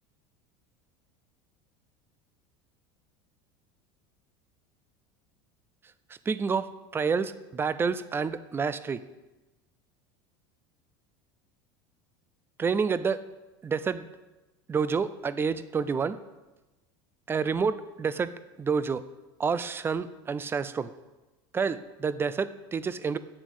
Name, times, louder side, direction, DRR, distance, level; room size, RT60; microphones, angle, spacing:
voice 1, 6.1-9.0 12.6-13.2 13.6-14.1 14.7-16.2 17.3-19.0 19.4-20.9 21.5-23.2, right 5 dB, 20° right, 15 dB, 0.5 m, -29 dB
8.4 x 7.6 x 8.0 m, 1.1 s
supercardioid pair, 125°, 13 cm